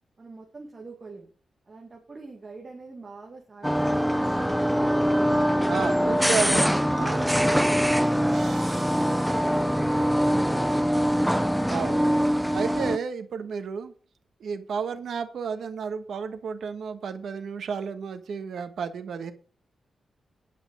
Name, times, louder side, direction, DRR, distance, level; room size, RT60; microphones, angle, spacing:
voice 1, 0.2-1.3 1.7-5.8 6.3-8.9 9.3-11.2, right 3 dB, 30° right, -1 dB, 2.1 m, -45 dB
sound 1, 3.6-13.0, equal, ahead, 0.4 m, -23 dB
voice 2, 5.7-6.7 7.0-7.3 11.7-12.1 12.5-13.9 14.4-19.3, right 6 dB, 70° right, 8 dB, 1.3 m, -32 dB
sound 2, 8.3-10.4, right 5 dB, 50° right, 3.6 m, -49 dB
9.9 x 5.9 x 6.1 m, 0.41 s
wide cardioid pair, 160°, 0 cm